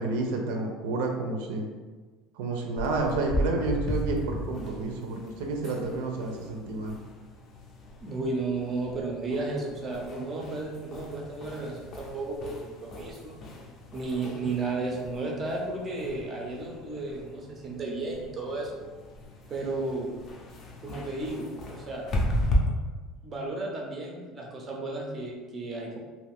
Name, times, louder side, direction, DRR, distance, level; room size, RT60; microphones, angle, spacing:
voice 1, 0.0-1.7 2.3-7.0, right 2 dB, 90° right, 2 dB, 0.5 m, -30 dB
sound 1, 2.8-22.6, equal, 30° left, 0.5 m, -36 dB
voice 2, 8.0-13.4 13.9-18.7 19.5-20.1 20.8-22.0 23.2-26.0, right 3 dB, 20° right, -1 dB, 0.5 m, -33 dB
2.5 x 2.4 x 3.4 m, 1.3 s
cardioid pair, 165°, 0 cm